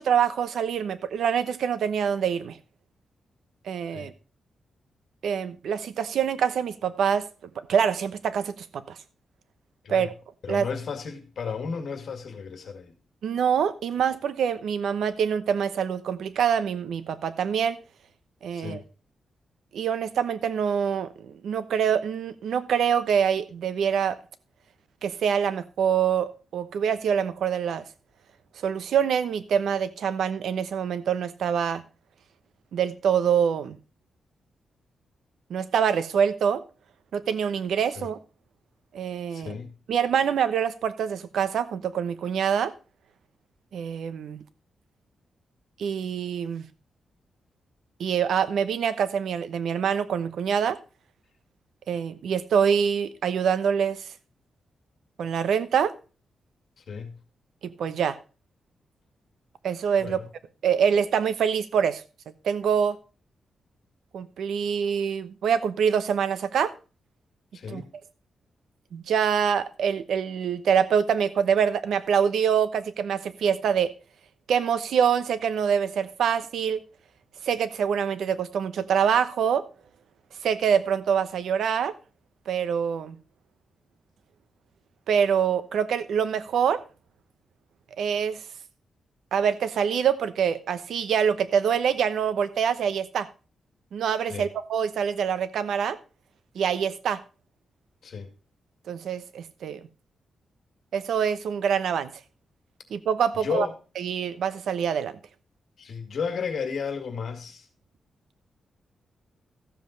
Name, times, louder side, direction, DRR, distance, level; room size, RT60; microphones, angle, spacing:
voice 1, 0.0-2.6 3.6-4.1 5.2-7.3 7.6-9.0 9.9-10.1 10.5-10.7 13.2-17.8 18.4-18.8 19.7-24.2 25.0-27.8 28.6-31.8 32.7-33.8 35.5-36.6 37.1-38.2 38.9-39.6 39.9-42.7 43.7-44.4 45.8-46.7 48.0-50.8 51.9-54.1 55.2-55.9 57.6-58.2 59.6-60.2 60.6-62.0 62.4-63.0 64.1-66.7 67.7-67.8 68.9-73.9 74.5-76.8 77.4-79.6 80.4-81.9 82.5-83.2 85.1-86.8 88.0-88.4 89.3-93.3 93.9-96.0 96.5-97.2 98.9-99.8 100.9-102.1 102.9-103.7 104.0-105.2, right 7 dB, 85° right, 0.9 m, -25 dB
voice 2, 10.4-12.9 18.5-18.9 38.0-38.1 39.3-39.8 56.8-57.2 60.0-60.3 67.5-67.9 94.3-94.5 98.0-98.3 103.4-103.7 105.8-107.7, left 6 dB, 60° left, 2.1 m, -33 dB
14.0 x 7.5 x 4.0 m
wide cardioid pair, 130°, 0 cm